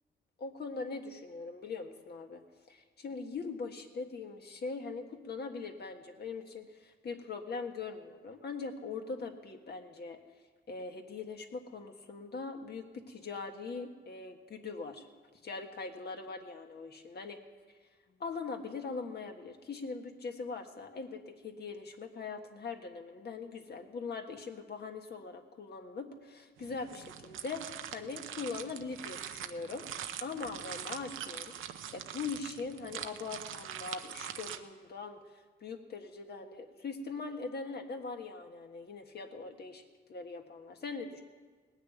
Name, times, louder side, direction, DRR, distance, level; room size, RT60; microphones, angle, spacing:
voice 1, 0.4-2.4 2.7-10.2 10.7-15.0 15.4-17.4 18.2-29.8 30.2-39.8 40.1-41.2, left 4 dB, 55° left, 4 dB, 1.6 m, -41 dB
sound 1, 26.6-34.6, right 9 dB, 85° right, 0.7 m, -43 dB
18.5 x 6.6 x 9.3 m, 1.4 s
cardioid pair, 85°, 20 cm